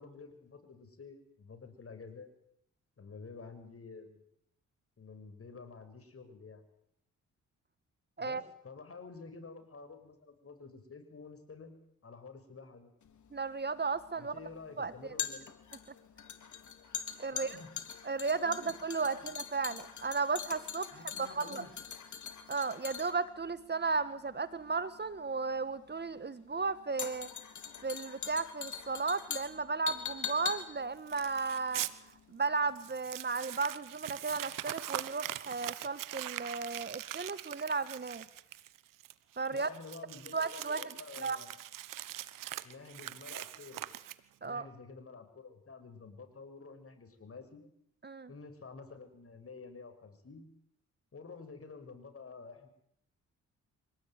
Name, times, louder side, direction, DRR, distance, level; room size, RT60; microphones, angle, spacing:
voice 1, 0.0-2.3 3.0-4.2 5.0-6.6 8.2-11.7 12.0-12.9 14.2-15.5 17.3-17.7 18.3-18.7 19.0-19.3 20.9-21.7 39.5-41.5 42.6-43.8 44.4-47.6 48.3-50.4 51.1-52.7, left 4 dB, 45° left, 8 dB, 6.8 m, -50 dB
sound 1, 13.0-32.3 32.6-32.7, left 7 dB, 65° left, 3.6 m, -43 dB
voice 2, 13.3-14.3 14.8-14.9 17.2-17.6 18.0-21.7 22.5-27.3 27.8-31.8 32.3-38.2 39.4-39.7 40.3-41.4 44.4-44.7 48.0-48.3, right 4 dB, 30° right, 14 dB, 1.5 m, -34 dB
Crumpling crinkling, 31.1-31.9 32.4-32.5 32.8-44.5, right 13 dB, 85° right, 1.3 m, -42 dB
25.5 x 18.0 x 9.6 m, 0.71 s
cardioid pair, 70°, 32 cm